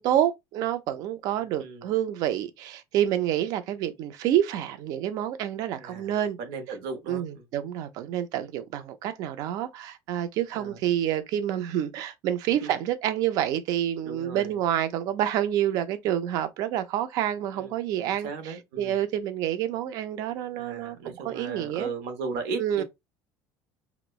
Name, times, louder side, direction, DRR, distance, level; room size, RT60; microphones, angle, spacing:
voice 1, 0.0-6.4 7.1-21.0 21.2-21.9 22.6-22.8, right 11 dB, 50° right, 0.4 m, -28 dB
voice 2, 5.8-7.4 10.5-10.8 12.6-12.7 14.0-14.6 17.5-17.7 18.1-19.0 20.5-22.8, right 4 dB, 80° right, 0.8 m, -36 dB
2.9 x 2.0 x 2.3 m
cardioid pair, 175°, 8 cm